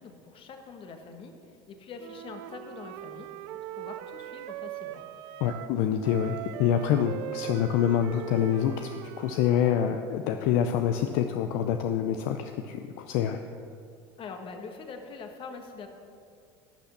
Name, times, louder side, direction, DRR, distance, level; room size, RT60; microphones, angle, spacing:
voice 1, 0.0-5.0 14.2-15.9, left 4 dB, 45° left, 5 dB, 1.4 m, -44 dB
Wind instrument woodwind instrument, 2.0-5.8 6.0-10.0, right 13 dB, 70° right, 0.5 m, -40 dB
voice 2, 5.4-8.9 9.2-13.4, left 9 dB, 70° left, 6 dB, 0.5 m, -26 dB
12.0 x 5.8 x 6.8 m, 2.3 s
hypercardioid pair, 85°, 12 cm